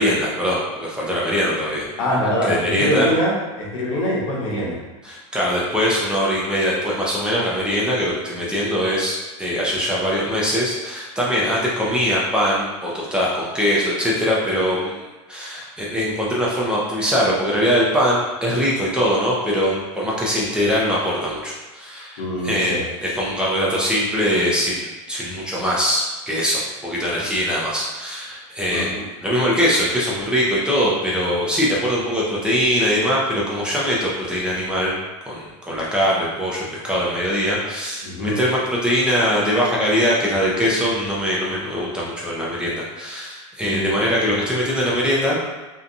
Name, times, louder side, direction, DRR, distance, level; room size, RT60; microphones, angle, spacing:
voice 1, 0.0-1.9 2.4-3.1 5.0-15.0 15.3-28.9 29.2-34.9 35.3-45.4, equal, 5° right, -6 dB, 0.5 m, -22 dB
voice 2, 2.0-4.8 22.2-22.8 28.7-29.0 38.0-38.4 43.6-44.0, equal, 75° left, -4 dB, 1.0 m, -23 dB
2.7 x 2.3 x 2.5 m, 1.2 s
supercardioid pair, 130°, 17 cm